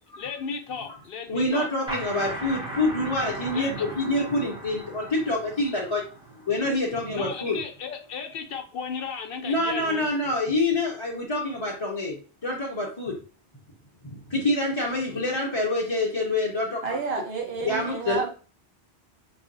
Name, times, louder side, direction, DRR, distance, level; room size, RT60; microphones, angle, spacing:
voice 1, 0.2-1.7 3.5-3.9 7.1-10.1, left 6 dB, 65° left, 5 dB, 0.8 m, -35 dB
voice 2, 1.3-6.1 6.5-7.6 9.4-13.2 14.0-16.9 17.1-17.2 17.6-18.3, left 2 dB, 30° left, -4 dB, 0.7 m, -26 dB
sound 1, 1.9-7.3, right 2 dB, 5° right, 0.8 m, -37 dB
voice 3, 16.8-18.3, right 4 dB, 65° right, 0 dB, 1.0 m, -30 dB
4.0 x 2.7 x 2.5 m, 0.37 s
omnidirectional pair, 1.1 m